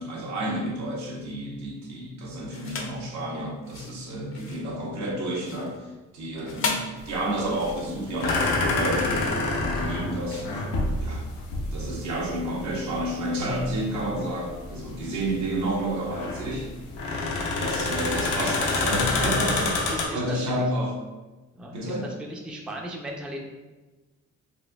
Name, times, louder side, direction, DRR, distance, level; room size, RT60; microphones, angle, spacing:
voice 1, 0.0-10.7 11.0-11.2 11.7-16.7 17.6-20.9 21.7-22.0, right 1 dB, 70° right, -2 dB, 0.9 m, -30 dB
sound 1, 2.5-3.0 3.6-11.4, left 4 dB, 45° left, 0.6 m, -37 dB
sound 2, 7.0-20.0, left 2 dB, 90° left, 0.7 m, -28 dB
voice 2, 18.0-18.5 19.9-20.4 21.5-23.4, equal, 5° right, 0 dB, 0.4 m, -37 dB
4.1 x 2.5 x 2.2 m, 1.2 s
cardioid pair, 90°, 30 cm